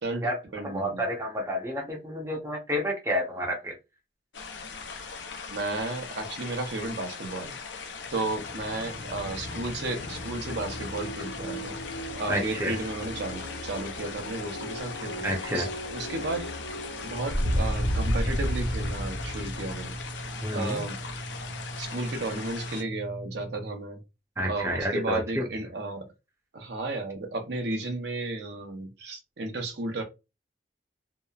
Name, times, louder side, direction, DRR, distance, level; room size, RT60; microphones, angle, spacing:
voice 1, 0.0-1.0 5.5-7.6 8.1-11.8 12.2-16.5 17.0-19.9 20.5-21.0 21.8-24.0 24.4-26.1 26.5-30.0, right 2 dB, 70° right, 0.7 m, -33 dB
voice 2, 0.6-3.7 12.3-12.7 15.2-15.7 20.4-20.9 24.4-25.5, equal, 15° right, 0.6 m, -29 dB
sound 1, 4.3-22.8, left 5 dB, 90° left, 0.6 m, -40 dB
sound 2, 8.1-21.5, equal, 70° left, 1.0 m, -34 dB
sound 3, 18.0-23.6, right 1 dB, 30° left, 0.6 m, -40 dB
2.8 x 2.0 x 2.3 m
head